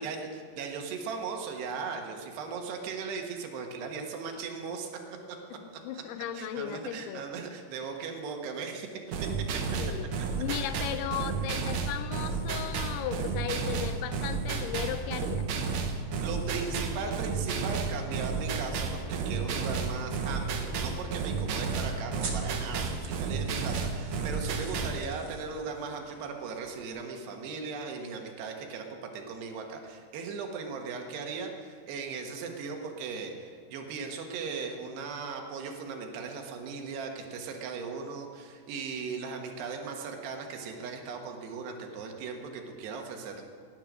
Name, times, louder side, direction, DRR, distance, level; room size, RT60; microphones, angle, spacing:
voice 1, 0.0-4.9 5.3-5.4 5.7-6.0 6.4-9.0 16.0-43.4, right 5 dB, 85° right, 3 dB, 3.6 m, -38 dB
voice 2, 5.6-7.2 9.8-10.1 10.4-15.5, left 10 dB, 80° left, 11 dB, 2.6 m, -36 dB
sound 1, 9.1-25.0, right 5 dB, 65° right, 1.9 m, -32 dB
sound 2, 18.7-26.9, right 4 dB, 40° right, 1.7 m, -48 dB
17.0 x 11.0 x 6.2 m, 2.1 s
omnidirectional pair, 4.6 m